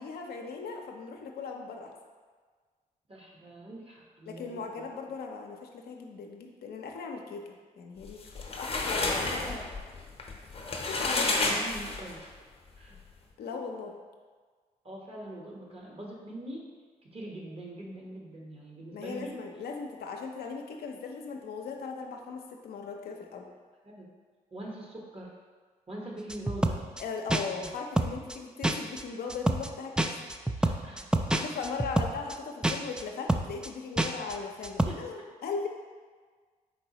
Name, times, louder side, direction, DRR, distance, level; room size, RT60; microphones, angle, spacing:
voice 1, 0.0-1.9 4.3-9.4 10.8-11.3 13.4-14.0 18.9-23.5 27.0-30.1 31.3-35.7, left 5 dB, 70° left, 2 dB, 0.5 m, -38 dB
voice 2, 3.1-4.9 8.9-9.6 9.9-10.0 11.0-12.2 12.8-13.0 14.8-16.6 17.0-19.4 23.8-24.1 24.5-25.3 25.9-26.8 27.5-27.7 30.6-31.3 31.6-31.8 34.9-35.0, right 1 dB, 35° right, -2 dB, 1.1 m, -43 dB
sound 1, 8.1-12.3, left 2 dB, 35° left, 0.7 m, -30 dB
sound 2, 26.3-27.0 27.3-27.7 28.0-28.4 28.6-29.0 29.3-29.7 30.0-32.3 32.6-33.0 33.3-33.7 34.0-34.3 34.6-34.9, right 1 dB, 5° right, 0.3 m, -27 dB
4.3 x 3.9 x 2.9 m, 1.5 s
hypercardioid pair, 50°, 17 cm